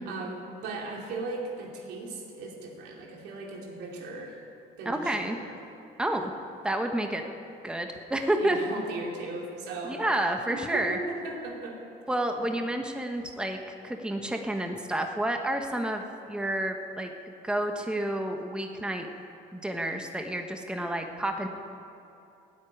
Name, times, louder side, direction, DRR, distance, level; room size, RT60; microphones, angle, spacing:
voice 1, 0.1-4.4 4.8-5.5 8.4-10.0 10.5-11.8, right 3 dB, 85° right, -1 dB, 3.0 m, -37 dB
voice 2, 4.8-5.4 6.0-6.3 6.6-7.2 7.6-8.6 9.9-11.0 12.1-13.6 13.8-17.1 17.4-19.1 19.5-21.5, right 1 dB, 5° right, 4 dB, 1.2 m, -30 dB
15.0 x 8.4 x 9.8 m, 2.8 s
cardioid pair, 110°, 17 cm